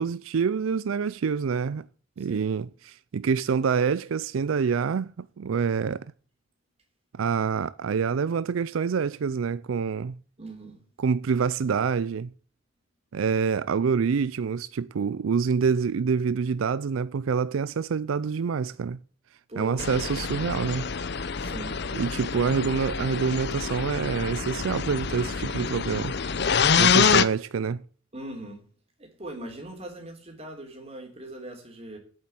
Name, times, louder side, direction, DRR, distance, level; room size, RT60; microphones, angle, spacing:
voice 1, 0.0-1.9 2.2-6.0 7.1-10.2 11.0-12.3 13.1-19.0 19.6-20.9 21.9-26.1 26.8-27.8, right 6 dB, 85° right, 0.4 m, -26 dB
voice 2, 10.4-10.8 19.5-19.9 21.4-21.8 28.1-28.6 29.0-32.0, right 1 dB, 30° right, 3.5 m, -40 dB
sound 1, 19.8-27.2, left 6 dB, 55° left, 0.8 m, -26 dB
8.7 x 7.6 x 8.4 m
head